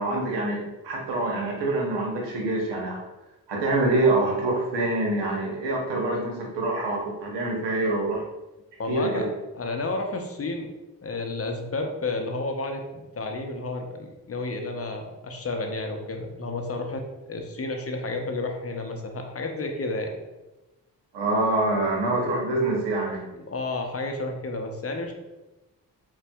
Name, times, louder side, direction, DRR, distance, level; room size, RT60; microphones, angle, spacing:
voice 1, 0.0-3.0 3.5-8.2 8.9-9.3 21.1-23.2, right 2 dB, 85° right, -1 dB, 0.8 m, -25 dB
voice 2, 8.8-10.7 11.0-20.1 23.5-25.1, left 2 dB, 35° left, 3 dB, 0.6 m, -31 dB
4.1 x 2.3 x 2.2 m, 1.0 s
supercardioid pair, 45°, 41 cm